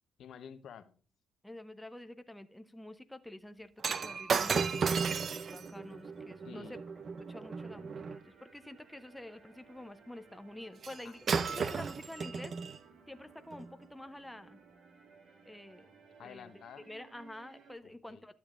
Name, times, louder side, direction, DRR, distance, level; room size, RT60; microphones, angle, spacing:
voice 1, 0.2-1.0 6.4-6.8 11.0-11.1 11.4-11.6 16.2-16.8 17.8-18.2, left 8 dB, 70° left, 10 dB, 0.8 m, -50 dB
voice 2, 1.4-3.7 4.0-5.0 5.5-6.8 7.3-12.5 13.1-14.6 15.4-15.9 16.2-16.5 16.9-18.3, left 1 dB, 5° left, 9 dB, 0.6 m, -48 dB
Shatter, 3.8-8.2 10.8-11.0 11.3-12.8 13.5-13.7, right 5 dB, 50° right, 0.5 m, -34 dB
sound 1, 4.0-17.7, right 5 dB, 75° right, 1.5 m, -60 dB
12.0 x 7.1 x 2.4 m, 0.39 s
cardioid pair, 90°, 0 cm